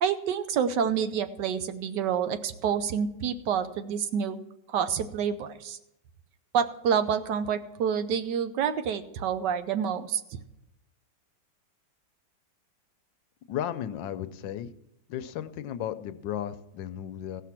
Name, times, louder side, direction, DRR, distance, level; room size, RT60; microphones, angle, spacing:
voice 1, 0.0-4.4 4.7-5.8 6.5-10.4, right 7 dB, 75° right, 10 dB, 1.3 m, -28 dB
voice 2, 13.5-14.7 15.1-17.4, left 10 dB, 80° left, 12 dB, 1.3 m, -34 dB
16.0 x 5.8 x 5.9 m, 0.86 s
omnidirectional pair, 2.0 m